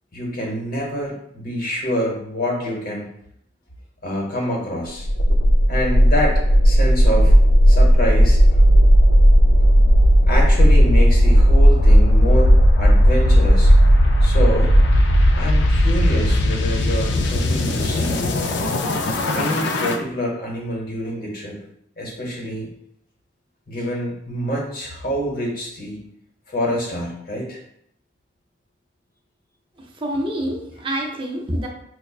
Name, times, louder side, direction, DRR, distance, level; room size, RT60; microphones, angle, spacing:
voice 1, 0.1-3.1 4.0-5.1 5.7-7.3 7.7-8.6 10.3-13.7 14.2-14.7 15.3-18.2 19.3-21.6 22.0-22.7 23.7-26.1 26.5-27.6, equal, 50° left, -1 dB, 0.9 m, -26 dB
sound 1, 5.0-20.0, equal, 65° left, 0.4 m, -14 dB
voice 2, 30.0-31.7, right 1 dB, 25° right, 0 dB, 0.5 m, -26 dB
5.6 x 2.2 x 2.3 m, 0.72 s
head